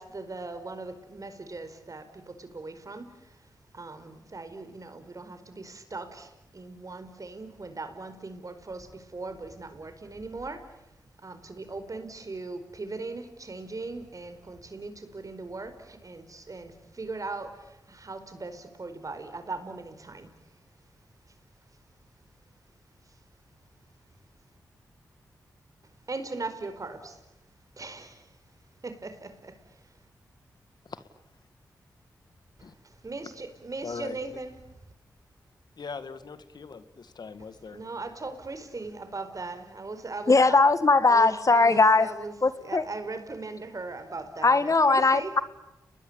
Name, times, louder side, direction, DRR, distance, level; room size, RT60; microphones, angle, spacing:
voice 1, 0.0-3.4 3.7-10.8 11.2-20.3 26.1-27.2 27.8-28.3 28.8-29.6 32.8-34.7 37.6-40.6 41.1-45.4, right 3 dB, 45° right, 10 dB, 4.7 m, -39 dB
voice 2, 33.8-34.4 35.8-37.8, left 5 dB, 65° left, 12 dB, 2.0 m, -40 dB
voice 3, 40.3-42.1 42.4-42.8 44.4-45.4, left 3 dB, 45° left, 13 dB, 1.8 m, -20 dB
30.0 x 21.0 x 8.8 m, 0.92 s
supercardioid pair, 45°, 8 cm